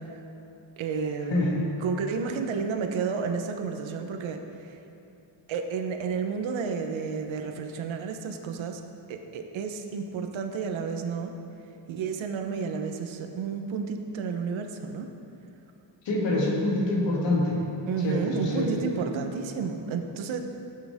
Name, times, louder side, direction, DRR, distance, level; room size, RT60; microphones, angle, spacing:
voice 1, 0.8-1.4 1.8-4.8 5.5-8.8 9.1-11.3 11.9-15.1 17.9-20.4, right 5 dB, 85° right, 5 dB, 1.1 m, -31 dB
voice 2, 1.3-1.7 16.0-17.6 18.0-18.7, left 2 dB, 70° left, -3 dB, 2.7 m, -25 dB
16.0 x 8.9 x 3.6 m, 2.8 s
cardioid pair, 165°, 45 cm